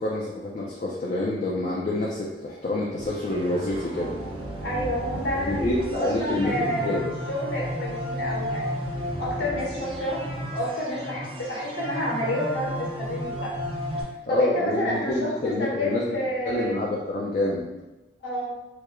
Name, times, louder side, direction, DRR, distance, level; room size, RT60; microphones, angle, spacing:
voice 1, 0.0-4.2 5.4-7.0 14.3-16.0 16.5-17.7, left 1 dB, 40° left, -4 dB, 0.4 m, -27 dB
sound 1, 3.0-14.0, equal, 30° right, 0.5 m, -33 dB
voice 2, 4.6-7.0 7.3-8.8 9.2-10.2 10.5-13.5 14.3-16.8 18.2-18.5, equal, 80° left, -5 dB, 1.0 m, -29 dB
4.5 x 2.0 x 2.5 m, 1.1 s
head